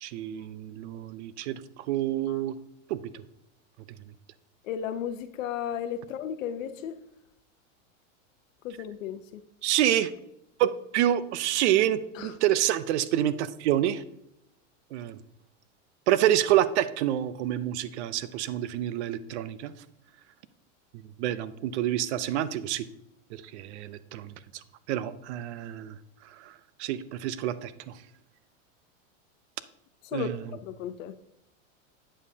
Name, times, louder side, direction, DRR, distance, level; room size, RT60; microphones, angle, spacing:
voice 1, 0.0-2.5 2.9-3.2 9.6-10.1 10.6-14.0 14.9-15.2 16.1-19.7 21.2-22.8 23.3-24.3 24.9-26.0 26.4-26.5 26.8-27.9 30.1-30.4, right 12 dB, 60° right, 0.6 m, -27 dB
voice 2, 4.6-7.0 8.6-9.4 12.1-12.4 30.0-31.1, left 9 dB, 85° left, 0.8 m, -35 dB
8.6 x 7.3 x 2.7 m
supercardioid pair, 155°, 38 cm